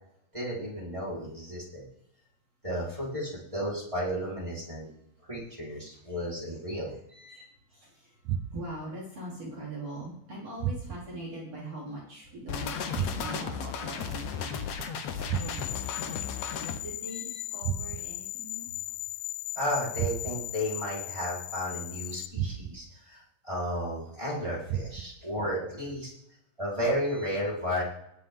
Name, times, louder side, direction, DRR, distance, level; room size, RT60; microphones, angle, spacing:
voice 1, 0.3-1.8 2.6-4.9 5.3-7.3 17.1-17.2 19.5-26.1 26.6-27.8, equal, 10° right, -5 dB, 4.3 m, -33 dB
voice 2, 5.7-6.3 7.3-12.7 13.1-14.9 15.2-18.7, right 1 dB, 45° right, -5 dB, 4.6 m, -43 dB
sound 1, 8.2-8.9 10.6-11.2 12.9-13.6 15.3-15.9 17.6-18.3 20.0-20.6 22.3-23.0 24.7-25.3, right 9 dB, 70° right, 2.0 m, -34 dB
sound 2, 12.5-16.8, left 6 dB, 65° left, 2.0 m, -35 dB
sound 3, 15.3-22.3, left 17 dB, 85° left, 2.4 m, -38 dB
20.0 x 8.2 x 3.8 m, 0.78 s
omnidirectional pair, 4.1 m